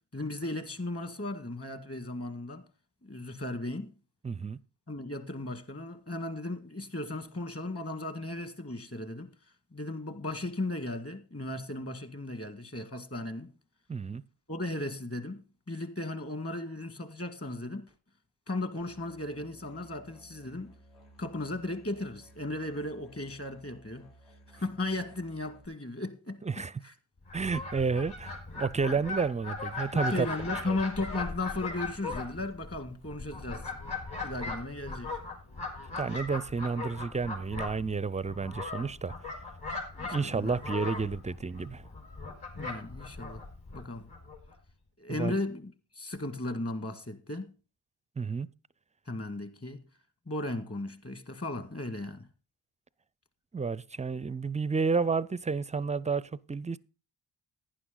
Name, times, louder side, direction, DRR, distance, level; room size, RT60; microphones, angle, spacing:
voice 1, 0.1-2.7 3.0-3.9 4.9-9.3 9.7-13.5 14.5-17.9 18.5-20.7 21.2-24.1 24.5-26.9 29.9-33.7 34.2-35.2 40.0-40.5 42.6-43.4 43.7-44.1 45.0-47.5 49.1-49.8 50.3-52.3, left 2 dB, 30° left, 1.9 m, -36 dB
voice 2, 4.2-4.6 13.9-14.2 26.4-26.7 27.3-30.3 30.7-30.8 36.0-39.1 40.1-41.9 45.1-45.4 48.2-48.5 53.5-56.8, right 4 dB, 15° right, 0.4 m, -31 dB
Musical instrument, 18.8-25.7, right 1 dB, 70° left, 5.9 m, -57 dB
Fowl, 27.2-44.5, left 3 dB, 55° left, 4.7 m, -39 dB
11.5 x 9.8 x 3.9 m
supercardioid pair, 50°, 49 cm